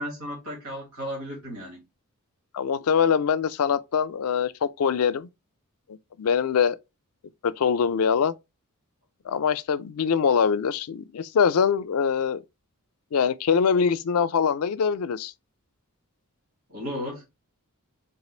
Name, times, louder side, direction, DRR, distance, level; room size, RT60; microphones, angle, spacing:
voice 1, 0.0-1.8 16.7-17.2, equal, 70° right, 1.6 m, -34 dB
voice 2, 2.5-5.3 5.9-6.8 7.4-8.3 9.3-12.4 13.1-15.3, left 6 dB, 75° left, 0.4 m, -23 dB
3.8 x 2.5 x 4.2 m
head